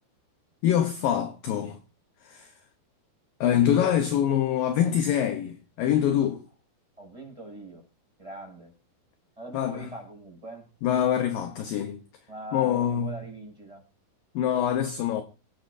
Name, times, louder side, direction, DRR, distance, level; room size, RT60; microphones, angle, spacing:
voice 1, 0.6-1.8 2.3-2.5 3.4-6.4 9.5-9.9 10.8-12.0 12.5-13.2 14.4-15.2, left 10 dB, 70° left, 2.2 m, -25 dB
voice 2, 7.0-7.8 8.2-8.7 9.4-10.7 12.3-13.8, right 1 dB, 5° right, 6.3 m, -42 dB
26.5 x 9.7 x 2.7 m
omnidirectional pair, 5.0 m